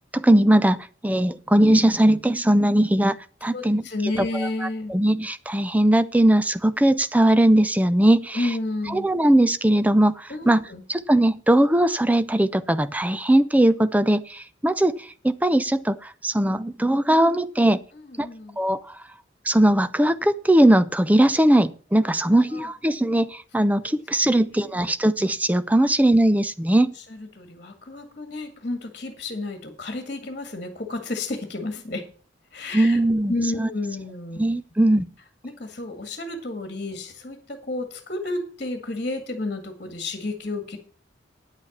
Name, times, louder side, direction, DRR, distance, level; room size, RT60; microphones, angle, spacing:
voice 1, 0.1-0.8 1.0-3.8 4.2-8.4 8.9-17.8 18.2-18.3 18.6-18.8 19.5-26.9 32.7-33.3 33.6-33.7 34.4-35.1, right 1 dB, 10° right, 13 dB, 0.5 m, -20 dB
voice 2, 3.5-4.9 8.3-9.1 10.3-10.8 17.9-18.6 22.2-22.7 24.2-24.3 27.0-32.1 32.5-33.0 33.3-34.4 35.4-40.8, left 2 dB, 45° left, 6 dB, 2.0 m, -31 dB
9.8 x 8.2 x 7.2 m, 0.41 s
head